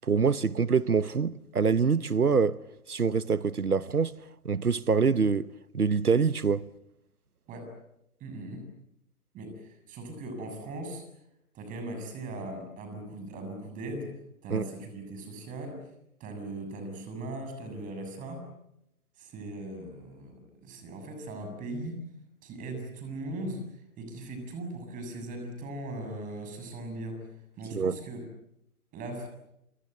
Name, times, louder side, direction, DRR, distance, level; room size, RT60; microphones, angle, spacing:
voice 1, 0.0-2.6 2.9-4.2 4.4-6.7 14.5-14.6 27.7-28.0, right 5 dB, 90° right, 1.0 m, -25 dB
voice 2, 8.2-8.7 9.3-11.0 11.5-14.1 14.4-15.8 16.2-18.5 19.2-22.0 22.4-27.3 27.6-28.2 28.9-29.3, right 1 dB, 20° right, 6.9 m, -39 dB
28.5 x 26.0 x 8.0 m
figure-of-eight pair, 135°, 44 cm